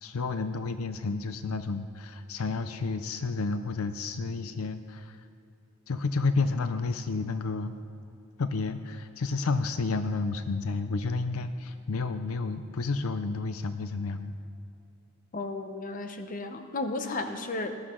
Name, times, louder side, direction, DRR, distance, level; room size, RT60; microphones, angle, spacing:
voice 1, 0.0-5.2 5.9-7.7 8.4-14.4, left 3 dB, 75° left, 10 dB, 0.5 m, -31 dB
voice 2, 15.3-17.7, left 2 dB, 35° left, 7 dB, 0.8 m, -34 dB
18.5 x 12.0 x 3.8 m, 2.6 s
head